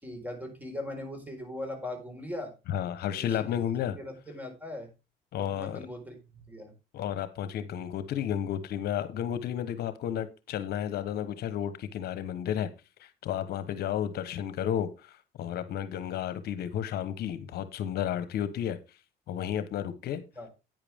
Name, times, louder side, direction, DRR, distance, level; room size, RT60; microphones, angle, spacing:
voice 1, 0.0-2.5 3.2-4.9 5.4-6.7 20.3-20.5, left 1 dB, 10° right, 4.4 m, -40 dB
voice 2, 2.7-4.0 5.3-5.8 6.9-12.7 13.0-18.8 19.3-20.2, left 10 dB, 70° left, 1.1 m, -32 dB
10.5 x 9.2 x 3.5 m
cardioid pair, 110°, 17 cm